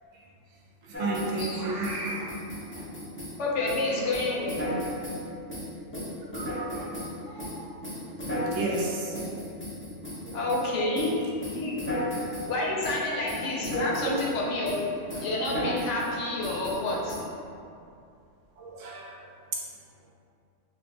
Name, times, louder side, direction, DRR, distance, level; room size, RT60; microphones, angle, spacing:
sound 1, 0.9-1.6 1.8-3.4 3.7-3.9 4.1-5.2 5.5-7.1 7.4-10.6 10.9-11.2 11.4-12.5 12.8-13.0 13.3-14.3 14.6-14.8 15.1-16.1 16.4-17.2, equal, 15° left, 0.5 m, -34 dB
voice 1, 1.0-2.4 3.7-4.1 6.3-6.9 7.3-7.7 8.5-9.4 10.2-10.4 10.8-11.0 14.0-14.2 16.5-16.6 18.6-19.1 19.5-19.6, right 2 dB, 75° right, -2 dB, 0.9 m, -33 dB
voice 2, 3.4-4.8 10.3-11.1 11.5-11.8 12.5-14.8 15.1-17.2, left 2 dB, 70° left, -3 dB, 0.9 m, -29 dB
3.7 x 2.4 x 2.6 m, 2.4 s
omnidirectional pair, 1.3 m